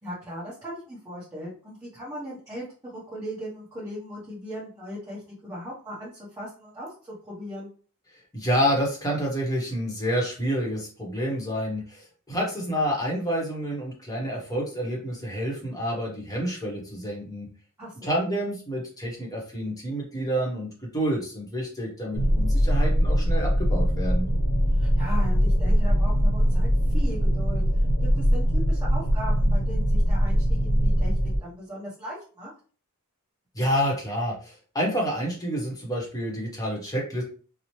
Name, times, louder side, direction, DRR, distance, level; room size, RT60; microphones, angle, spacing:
voice 1, 0.0-7.7 17.8-18.3 24.7-32.5, equal, 15° right, -9 dB, 0.9 m, -38 dB
voice 2, 8.1-17.5 18.0-24.3 33.5-37.2, equal, 15° left, -2 dB, 0.9 m, -28 dB
sound 1, 22.1-31.4, equal, 55° left, 0.6 m, -22 dB
2.8 x 2.0 x 3.0 m, 0.39 s
head